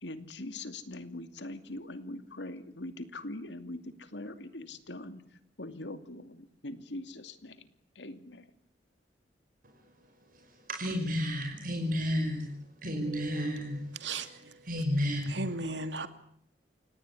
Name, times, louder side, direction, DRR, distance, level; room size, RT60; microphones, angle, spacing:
voice 1, 0.0-5.2 5.6-7.7 7.9-8.5, left 1 dB, 80° left, 2.6 m, -42 dB
voice 2, 10.3-12.5 12.8-14.3 14.6-15.5, equal, 50° right, 5.3 m, -32 dB
voice 3, 14.0-14.6 15.3-16.1, right 3 dB, 85° right, 2.6 m, -36 dB
29.0 x 18.5 x 9.8 m
head